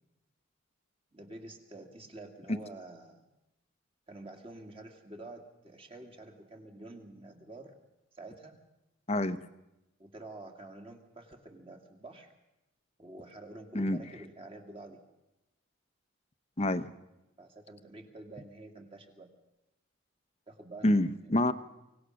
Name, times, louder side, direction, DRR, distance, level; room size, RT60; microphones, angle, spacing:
voice 1, 1.1-3.3 4.1-7.7 8.1-8.6 10.0-12.3 13.0-15.0 17.4-19.3 20.5-21.2, right 2 dB, 25° right, 4 dB, 2.3 m, -48 dB
voice 2, 16.6-16.9 20.8-21.5, left 1 dB, 30° left, 12 dB, 0.8 m, -27 dB
24.5 x 18.0 x 6.4 m, 0.94 s
head